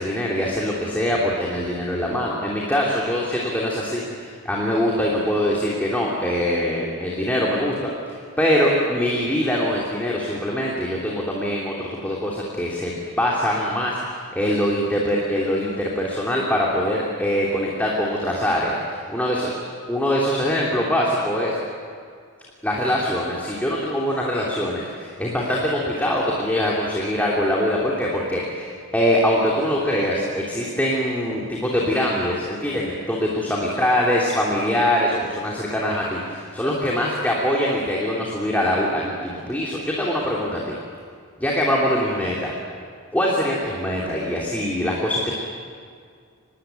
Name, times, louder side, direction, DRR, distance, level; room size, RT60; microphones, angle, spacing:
voice 1, 0.0-19.5 19.9-21.6 22.6-40.8 41.4-42.5 43.1-45.3, equal, 5° left, -4 dB, 2.9 m, -23 dB
25.5 x 20.0 x 9.3 m, 2.2 s
head